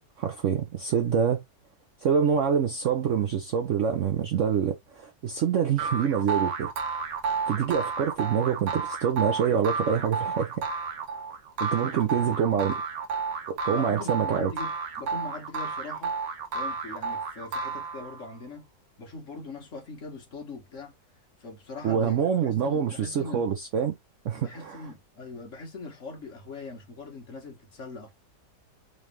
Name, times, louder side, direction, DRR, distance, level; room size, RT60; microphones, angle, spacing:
voice 1, 0.2-1.4 2.0-6.7 7.5-10.5 11.6-12.7 13.5-14.5 21.8-23.9 24.2-24.8, right 7 dB, 65° right, 0.7 m, -26 dB
sound 1, 5.8-18.3, right 4 dB, 85° right, 1.6 m, -32 dB
voice 2, 11.6-12.7 13.7-16.2 16.5-18.7 19.0-20.9 21.4-23.5 24.3-28.1, left 3 dB, 45° left, 1.5 m, -41 dB
3.9 x 3.2 x 3.2 m
omnidirectional pair, 1.9 m